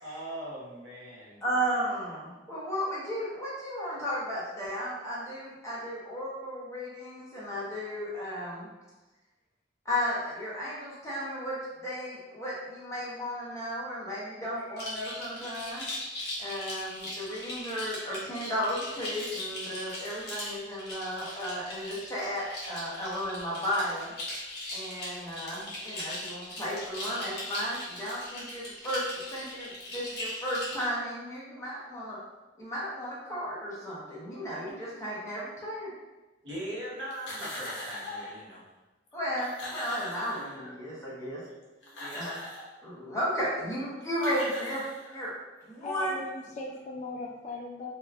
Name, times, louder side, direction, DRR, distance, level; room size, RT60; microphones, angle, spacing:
voice 1, 0.0-1.4 36.4-38.6 42.0-42.2, right 1 dB, 80° right, -6 dB, 0.9 m, -40 dB
voice 2, 1.4-8.7 9.8-15.8 16.4-24.1 24.7-32.2 32.6-35.9 39.1-41.4 42.1-42.3 42.8-44.8 45.1-45.3 45.7-46.2, equal, 15° left, -7 dB, 0.7 m, -34 dB
sound 1, 14.8-30.9, left 1 dB, 65° left, 1.0 m, -39 dB
sound 2, 37.1-38.4 39.1-39.2 39.4-40.9 41.6-42.8 43.8-43.9 44.1-45.4, left 1 dB, 85° left, 0.7 m, -40 dB
voice 3, 45.8-47.9, left 3 dB, 40° left, 0 dB, 0.3 m, -38 dB
2.7 x 2.2 x 2.4 m, 1.1 s
head